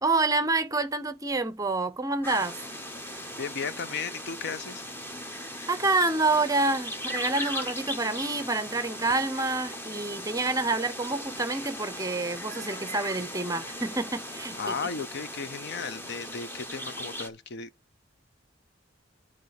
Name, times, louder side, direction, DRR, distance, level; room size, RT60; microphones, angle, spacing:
voice 1, 0.0-2.6 5.7-14.6, right 3 dB, 20° right, 0.7 m, -27 dB
sound 1, 2.2-17.3, equal, 10° left, 1.0 m, -38 dB
voice 2, 3.4-4.8 14.6-17.7, left 5 dB, 60° left, 0.6 m, -35 dB
9.2 x 4.2 x 6.5 m
head